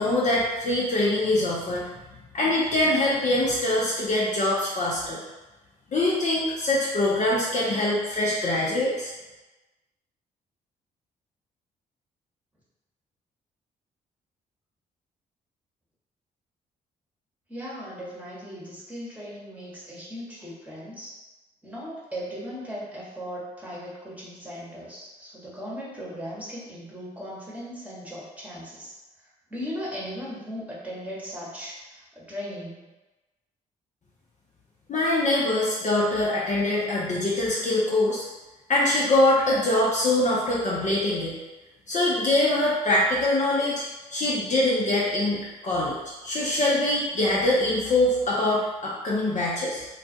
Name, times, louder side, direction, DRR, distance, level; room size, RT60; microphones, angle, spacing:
voice 1, 0.0-1.8 2.3-5.2 5.9-9.1 34.9-38.3 38.7-41.4 41.9-43.8 44.1-46.0 46.2-49.9, left 1 dB, 35° left, -6 dB, 0.6 m, -23 dB
voice 2, 17.5-21.1 21.6-28.9 29.2-32.9, equal, 5° right, -7 dB, 1.1 m, -38 dB
2.3 x 2.1 x 2.6 m, 1.1 s
hypercardioid pair, 45°, 21 cm